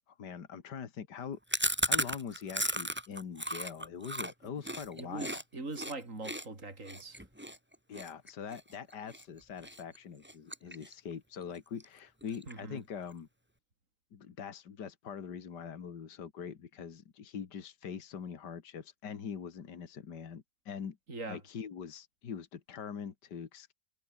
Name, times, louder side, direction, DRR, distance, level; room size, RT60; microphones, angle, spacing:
voice 1, 0.1-1.4 1.9-5.4 7.9-13.3 14.1-21.0 21.3-23.7, left 7 dB, 70° left, 2.3 m, -43 dB
Chewing mastication, 1.5-5.4 5.7-5.9 6.2-9.2 9.6-10.0 10.2-11.1 11.4-11.5 11.8-11.9 12.2-12.8, equal, 5° right, 4.1 m, -35 dB
voice 2, 5.0-7.2 12.5-12.8 21.1-21.4, right 3 dB, 45° right, 4.8 m, -42 dB
omnidirectional pair, 1.9 m